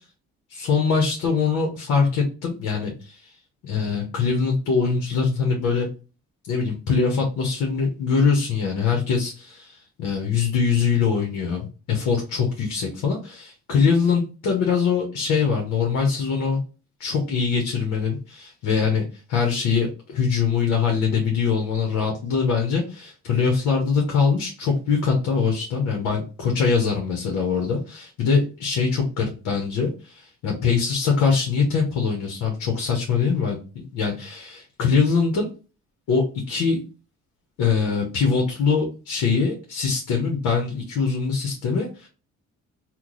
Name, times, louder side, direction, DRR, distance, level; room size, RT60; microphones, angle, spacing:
voice 1, 0.5-3.3 3.6-5.9 6.5-16.6 17.0-19.0 19.3-35.5 36.1-36.8 37.6-42.1, left 5 dB, 85° left, 1 dB, 1.0 m, -23 dB
2.9 x 2.3 x 3.8 m, 0.34 s
cardioid pair, 90°, 30 cm